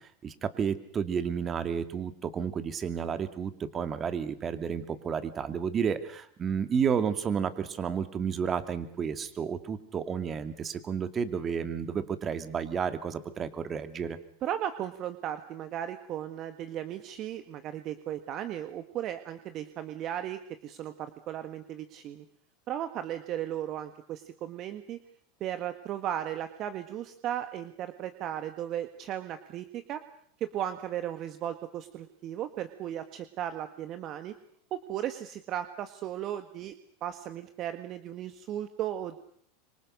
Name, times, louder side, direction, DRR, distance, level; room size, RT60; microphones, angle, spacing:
voice 1, 0.0-14.2, right 7 dB, 30° right, 10 dB, 2.6 m, -31 dB
voice 2, 14.4-22.2 22.7-25.0 25.4-30.0 30.4-34.3 34.7-36.7 37.0-39.2, right 11 dB, 45° right, 9 dB, 1.7 m, -36 dB
25.5 x 24.5 x 6.6 m, 0.65 s
hypercardioid pair, 100°, 0 cm